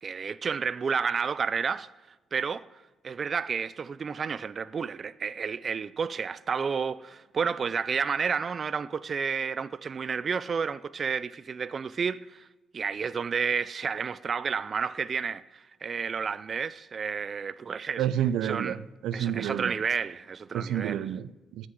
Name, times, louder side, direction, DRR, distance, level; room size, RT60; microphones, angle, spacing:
voice 1, 0.0-1.9 2.3-2.7 3.0-12.5 12.7-18.0 18.4-18.8 19.1-21.1, right 6 dB, 35° right, 0.3 m, -31 dB
voice 2, 18.0-19.7 20.5-21.7, right 10 dB, 85° right, 0.6 m, -30 dB
17.5 x 6.1 x 9.9 m
cardioid pair, 140°, 0 cm